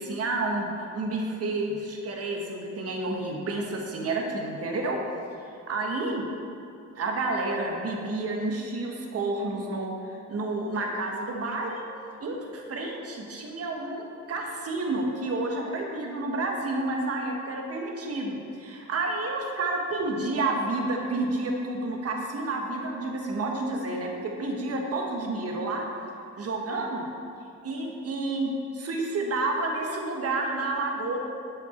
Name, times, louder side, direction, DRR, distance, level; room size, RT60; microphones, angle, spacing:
voice 1, 0.0-5.0 5.7-6.2 7.0-11.8 12.2-25.9 26.4-27.0 27.6-31.2, right 2 dB, 50° right, 1 dB, 1.3 m, -30 dB
7.9 x 5.9 x 4.4 m, 2.7 s
cardioid pair, 90°, 30 cm